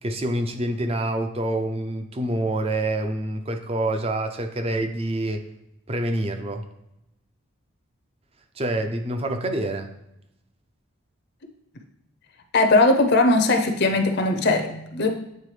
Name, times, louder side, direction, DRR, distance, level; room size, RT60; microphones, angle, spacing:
voice 1, 0.0-5.5 5.9-6.6 8.6-9.9, right 1 dB, 30° right, 6 dB, 0.5 m, -26 dB
voice 2, 12.5-15.1, left 2 dB, 50° left, 5 dB, 0.6 m, -19 dB
8.7 x 3.5 x 3.3 m, 0.87 s
head